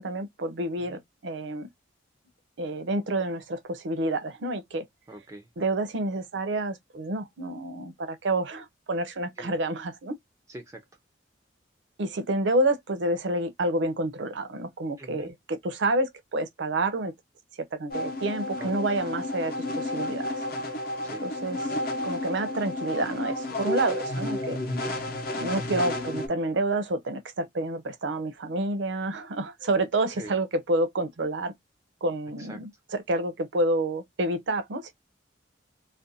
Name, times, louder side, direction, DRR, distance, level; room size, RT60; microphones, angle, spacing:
voice 1, 0.0-1.7 2.6-4.8 5.6-10.2 12.0-17.1 17.8-20.4 21.2-21.6 22.0-24.6 25.3-31.5 32.0-34.9, right 2 dB, 70° right, 0.5 m, -29 dB
voice 2, 5.1-5.5 9.4-9.6 10.5-10.8 15.0-15.3 18.6-18.8 21.0-21.3 24.7-25.0 30.1-30.3 32.4-32.6, right 1 dB, 15° right, 0.4 m, -43 dB
sound 1, 17.9-26.3, left 1 dB, 50° left, 0.7 m, -31 dB
2.5 x 2.1 x 2.5 m
head